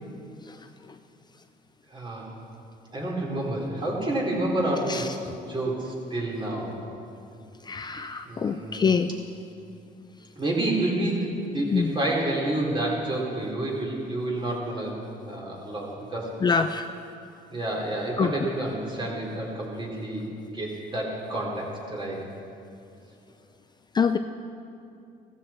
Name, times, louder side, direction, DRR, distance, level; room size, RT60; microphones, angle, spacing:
voice 1, 1.9-2.3 2.9-5.1 5.5-6.7 8.2-9.0 10.4-14.9 15.3-16.3 17.5-20.3 20.5-22.3, right 1 dB, 30° right, -2 dB, 3.9 m, -29 dB
voice 2, 7.7-9.1 11.7-11.9 16.4-16.9 18.2-18.3 23.9-24.2, left 5 dB, 25° left, 8 dB, 0.4 m, -24 dB
16.5 x 14.5 x 4.4 m, 2.6 s
cardioid pair, 110°, 17 cm